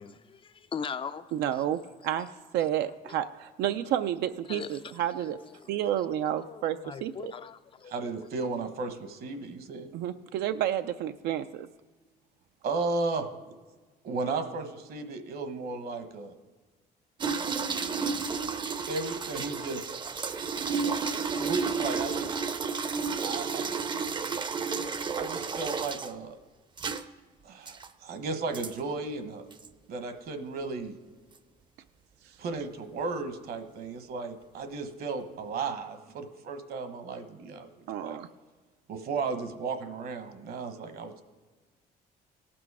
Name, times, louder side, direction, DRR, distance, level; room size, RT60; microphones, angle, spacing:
voice 1, 0.0-1.6 3.1-3.2 4.5-4.7 5.5-5.7 6.4-7.9, left 6 dB, 30° left, 0.4 m, -40 dB
voice 2, 1.3-2.3 2.5-5.4 5.7-7.3 9.9-11.7 37.9-38.3, right 11 dB, 80° right, 0.4 m, -30 dB
voice 3, 7.8-9.9 12.6-13.3 14.0-16.3 17.9-18.2 18.9-20.0 21.2-22.3 23.2-23.6 25.2-26.4 27.4-29.4 29.9-30.9 32.4-38.2 38.9-41.2, right 3 dB, 65° right, 1.2 m, -34 dB
sound 1, 17.2-26.1 26.8-27.0 27.7-27.9 28.5-28.7 29.5-29.7, right 5 dB, 25° right, 0.5 m, -32 dB
17.5 x 6.1 x 4.8 m
cardioid pair, 110°, 17 cm